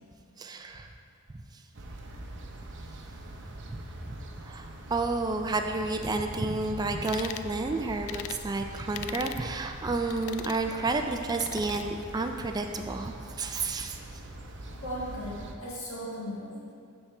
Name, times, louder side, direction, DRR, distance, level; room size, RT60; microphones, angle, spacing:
voice 1, 0.4-0.9 3.7-3.8 4.1-4.2 4.4-14.0, right 3 dB, 20° right, 5 dB, 0.3 m, -31 dB
sound 1, 1.7-15.5, right 1 dB, 55° right, 0.7 m, -43 dB
sound 2, 7.1-7.5 8.1-8.4 8.9-9.4 10.1-10.6 11.3-11.9, left 11 dB, 80° left, 0.3 m, -40 dB
voice 2, 14.7-16.7, equal, 65° left, -6 dB, 1.7 m, -37 dB
12.0 x 4.4 x 3.3 m, 2.4 s
head